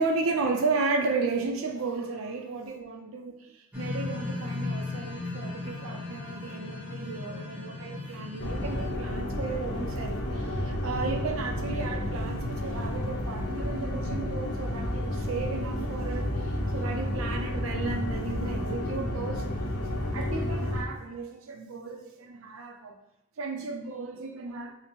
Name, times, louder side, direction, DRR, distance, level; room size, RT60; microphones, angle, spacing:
voice 1, 0.0-19.5 19.9-23.0 23.4-24.7, right 4 dB, 65° right, 3 dB, 0.5 m, -34 dB
sound 1, 3.7-8.9, left 3 dB, 5° right, 0.7 m, -36 dB
sound 2, 8.4-20.8, left 1 dB, 50° left, 0.5 m, -31 dB
4.1 x 2.1 x 3.0 m, 0.90 s
head